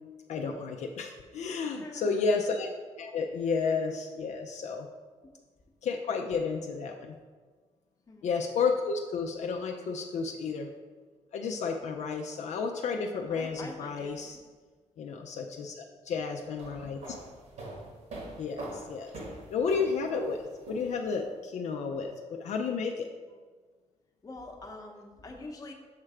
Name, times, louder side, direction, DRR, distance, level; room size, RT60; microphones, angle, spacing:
voice 1, 0.3-2.7 3.0-4.9 5.8-7.2 8.2-10.7 11.3-14.4 15.0-17.0 18.4-19.1 19.5-23.1, left 5 dB, 70° left, 2 dB, 0.4 m, -32 dB
voice 2, 1.8-2.5 8.1-8.3 11.5-11.9 13.3-14.1 23.2-23.4 24.2-25.7, left 2 dB, 30° left, 1 dB, 0.8 m, -45 dB
sound 1, 16.4-21.3, right 2 dB, 70° right, 1.5 m, -43 dB
6.5 x 3.2 x 4.8 m, 1.4 s
cardioid pair, 130°, 12 cm